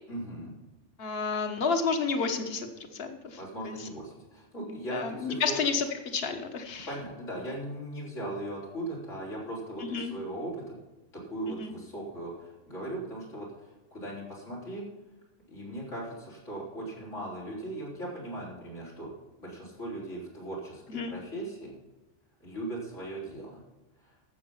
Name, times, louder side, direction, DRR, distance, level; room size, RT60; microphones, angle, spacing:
voice 1, 0.1-0.5 3.4-5.6 6.9-10.7 11.1-14.8 15.5-19.1 19.4-21.8 22.4-23.6 24.0-24.1, right 1 dB, 90° left, -4 dB, 4.7 m, -38 dB
voice 2, 1.0-3.4 3.6-3.9 4.7-6.9 9.8-10.1 11.6-11.7 20.9-21.1, left 5 dB, 55° left, 6 dB, 1.4 m, -31 dB
12.5 x 7.8 x 5.6 m, 1.1 s
omnidirectional pair, 1.2 m